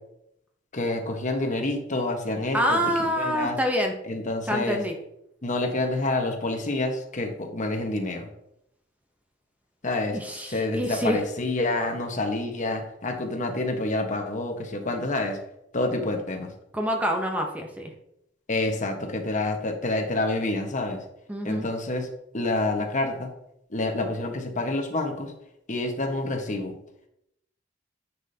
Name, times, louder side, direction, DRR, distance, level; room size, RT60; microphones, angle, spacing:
voice 1, 0.7-3.6 4.0-4.8 5.4-8.3 9.8-10.2 10.5-15.4 15.7-16.5 18.5-21.0 21.4-22.1 22.3-23.3 23.7-25.3 25.7-26.7, left 2 dB, 40° left, 3 dB, 1.2 m, -28 dB
voice 2, 2.5-3.9 4.5-4.9 10.1-11.2 16.7-17.9 21.3-21.7, equal, 10° right, 2 dB, 0.7 m, -26 dB
9.7 x 6.1 x 2.8 m, 0.80 s
head